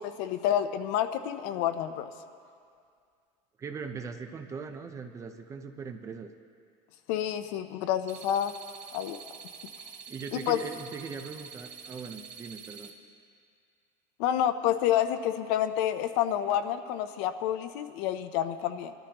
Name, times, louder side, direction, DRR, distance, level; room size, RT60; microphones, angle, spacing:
voice 1, 0.0-2.1 7.1-8.5 8.9-9.2 10.3-10.6 14.2-18.9, left 10 dB, 80° left, 10 dB, 0.7 m, -28 dB
voice 2, 3.6-6.3 10.1-12.9, right 5 dB, 20° right, 6 dB, 0.7 m, -40 dB
sound 1, 8.1-12.9, right 6 dB, 60° right, 1.1 m, -46 dB
22.0 x 13.0 x 3.0 m, 2.3 s
cardioid pair, 160°, 14 cm